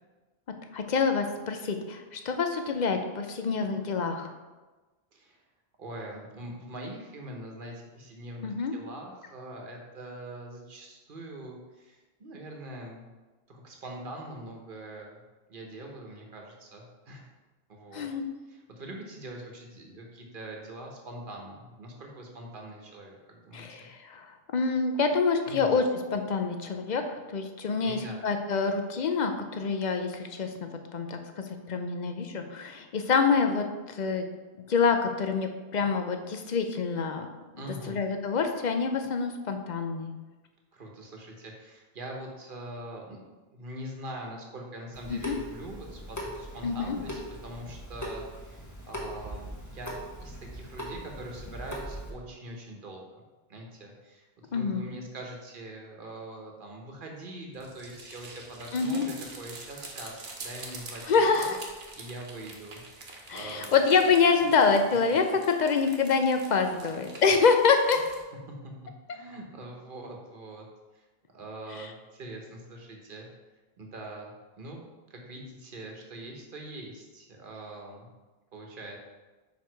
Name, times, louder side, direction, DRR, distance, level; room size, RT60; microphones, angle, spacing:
voice 1, 0.7-4.3 8.4-8.7 17.9-18.2 23.5-24.3 24.5-34.2 34.7-37.3 37.9-40.1 45.1-45.4 46.6-47.0 54.5-54.8 58.7-59.1 61.1-61.6 63.3-68.0 71.8-71.9, left 5 dB, 50° left, 6 dB, 0.7 m, -26 dB
voice 2, 5.8-13.0 13.5-15.2 15.5-17.3 17.7-18.1 18.5-23.7 25.4-25.8 27.8-28.2 37.6-38.0 40.7-43.2 43.5-53.2 53.5-61.5 62.0-62.8 63.3-64.0 64.4-64.5 66.8-67.0 68.5-68.7 69.1-70.7 71.3-73.3 73.8-74.8 75.1-78.1 78.5-79.0, right 1 dB, 55° right, 1 dB, 1.2 m, -43 dB
Water tap faucet / Sink (filling or washing) / Drip, 44.9-52.1, equal, 20° left, 1.1 m, -40 dB
sound 1, 57.5-68.2, right 3 dB, 75° right, 1.2 m, -46 dB
5.2 x 4.8 x 4.6 m, 1.2 s
omnidirectional pair, 1.0 m